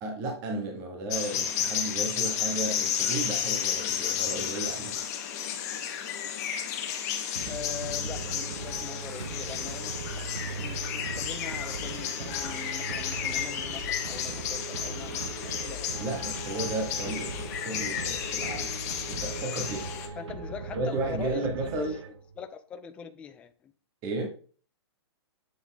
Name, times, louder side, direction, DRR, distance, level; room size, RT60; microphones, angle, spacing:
voice 1, 0.0-5.0 16.0-18.8 19.1-20.2 20.7-22.0 24.0-24.3, right 2 dB, 25° right, 1.4 m, -33 dB
sound 1, 1.1-20.1, left 9 dB, 35° left, 1.1 m, -32 dB
sound 2, 7.3-22.4, right 4 dB, 80° right, 1.2 m, -39 dB
voice 2, 7.5-16.2 20.2-21.9 22.4-23.7, left 8 dB, 10° left, 0.3 m, -42 dB
8.0 x 4.0 x 3.5 m
hypercardioid pair, 160°, 14 cm